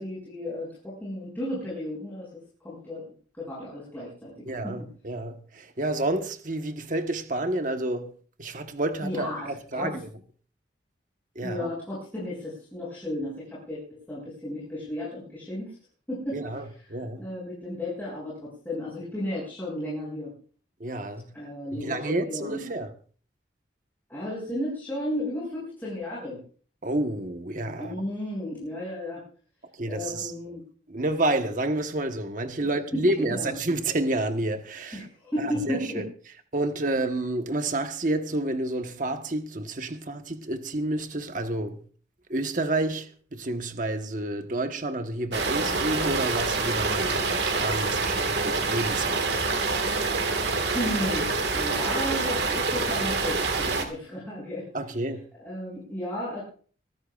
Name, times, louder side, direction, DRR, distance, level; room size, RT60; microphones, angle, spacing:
voice 1, 0.0-2.3 2.6-3.1 3.3-4.8 9.0-9.5 9.7-10.0 11.4-15.7 16.1-16.4 16.8-20.3 21.3-22.7 24.1-26.4 27.8-29.2 29.8-30.6 32.6-33.6 34.9-36.1 50.7-54.7 55.4-56.4, left 1 dB, 10° left, 7.1 m, -34 dB
voice 2, 4.4-8.1 8.4-10.1 11.3-11.7 16.3-17.2 20.8-21.3 21.7-22.9 26.8-27.9 29.8-30.3 30.9-35.1 35.4-36.0 36.5-41.8 42.3-49.4 54.7-55.2, right 2 dB, 45° right, 1.3 m, -29 dB
sound 1, 45.3-53.8, right 3 dB, 65° right, 1.8 m, -26 dB
24.5 x 14.0 x 2.5 m
head